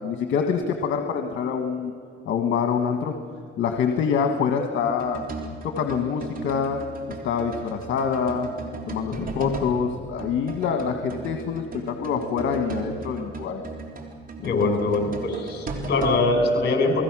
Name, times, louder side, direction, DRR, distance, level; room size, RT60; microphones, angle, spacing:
voice 1, 0.0-1.9 2.3-3.1 3.6-5.2 5.6-6.8 7.1-8.5 8.9-13.6 14.4-14.7, left 6 dB, 80° left, 4 dB, 1.5 m, -26 dB
sound 1, 4.8-9.9 10.2-16.3, right 3 dB, 45° right, 3.5 m, -36 dB
voice 2, 14.4-17.0, left 2 dB, 60° left, 4 dB, 5.4 m, -23 dB
29.5 x 20.0 x 6.2 m, 2.2 s
cardioid pair, 90°, 20 cm